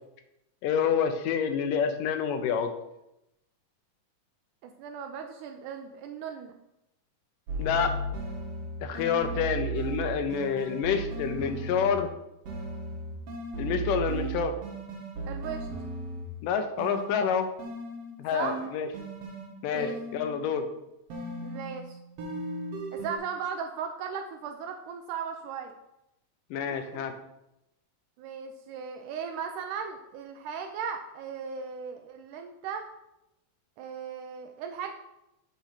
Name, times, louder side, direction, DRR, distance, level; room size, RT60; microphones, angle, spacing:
voice 1, 0.6-2.7 7.6-7.9 8.8-12.1 13.6-14.5 16.4-17.5 18.2-18.9 19.6-20.7 26.5-27.1, left 7 dB, 85° left, 7 dB, 2.3 m, -28 dB
voice 2, 4.6-6.5 9.2-9.4 15.3-15.7 18.3-18.6 19.7-20.0 21.4-22.0 22.9-25.8 26.7-27.1 28.2-32.9 33.8-34.9, right 6 dB, 80° right, 5 dB, 2.0 m, -37 dB
sound 1, 7.5-12.1 12.5-16.4 16.8-20.5 21.1-23.2, right 2 dB, 55° right, 2.2 m, -36 dB
7.2 x 5.3 x 5.7 m, 0.87 s
omnidirectional pair, 3.8 m